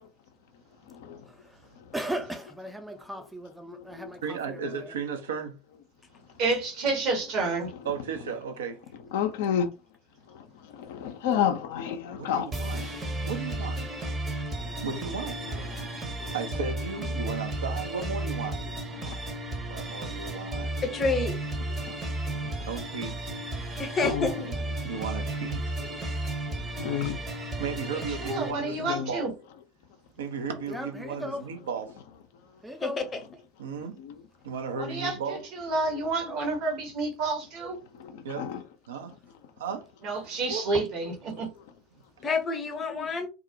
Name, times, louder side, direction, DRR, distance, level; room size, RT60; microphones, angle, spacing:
voice 1, 1.3-1.6 1.9-4.9 30.7-31.5 32.6-33.0, right 1 dB, 5° right, 0.4 m, -37 dB
voice 2, 4.2-5.6 7.8-8.8 12.1-13.0 13.2-13.8 14.8-15.5 16.3-18.6 19.7-20.7 22.6-23.3 24.8-25.8 27.6-29.3 30.2-32.0 33.6-34.0 34.4-35.4 38.2-38.5 38.9-39.1 39.6-39.8 40.5-40.6, right 6 dB, 75° right, 0.4 m, -35 dB
voice 3, 6.4-7.7 27.9-29.3 34.8-37.8 40.0-41.5, right 3 dB, 55° right, 0.9 m, -29 dB
voice 4, 9.1-9.7 10.9-12.5 24.0-24.3 26.8-27.2 28.6-29.1 34.0-34.1 38.4-38.6 42.9-43.1, left 8 dB, 65° left, 0.4 m, -29 dB
sound 1, 12.5-28.5, right 1 dB, 25° right, 0.7 m, -34 dB
voice 5, 20.8-21.4 23.8-24.5 32.8-33.2 42.2-43.3, left 3 dB, 30° left, 0.7 m, -28 dB
2.4 x 2.0 x 2.6 m
figure-of-eight pair, 75°, 0 cm